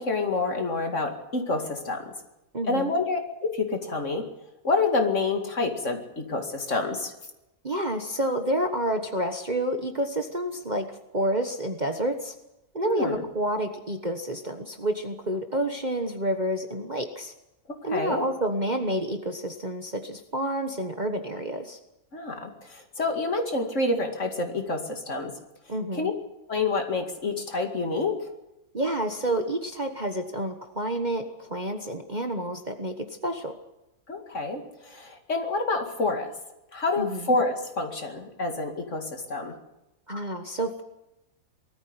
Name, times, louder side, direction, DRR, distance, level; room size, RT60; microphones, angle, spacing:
voice 1, 0.0-2.1 2.7-4.3 4.6-7.1 12.8-13.2 17.7-18.2 22.1-25.4 25.9-26.1 26.5-28.3 34.1-36.3 36.7-39.6, left 3 dB, 45° left, 4 dB, 2.5 m, -28 dB
voice 2, 2.5-2.9 7.6-10.9 11.1-12.3 12.7-17.3 17.8-21.8 25.7-26.1 28.7-33.6 37.0-37.3 40.1-40.8, right 1 dB, 30° right, 5 dB, 1.3 m, -29 dB
20.0 x 14.0 x 9.7 m, 0.93 s
omnidirectional pair, 1.8 m